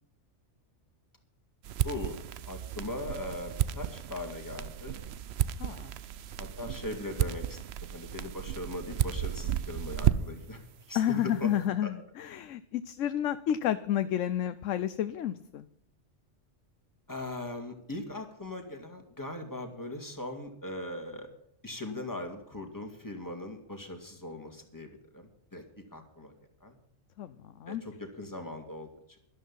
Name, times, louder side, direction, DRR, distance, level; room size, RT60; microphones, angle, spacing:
sound 1, 1.6-10.5, right 10 dB, 65° right, 0.9 m, -33 dB
voice 1, 1.8-2.2 2.5-5.0 6.4-11.5 11.8-11.9 17.1-21.3 21.6-26.3 26.6-26.8 27.7-28.9, left 1 dB, 15° left, 4 dB, 2.4 m, -40 dB
voice 2, 5.6-5.9 10.9-15.7 27.2-27.8, left 10 dB, 85° left, 12 dB, 1.0 m, -31 dB
13.0 x 12.0 x 5.6 m, 0.74 s
omnidirectional pair, 1.3 m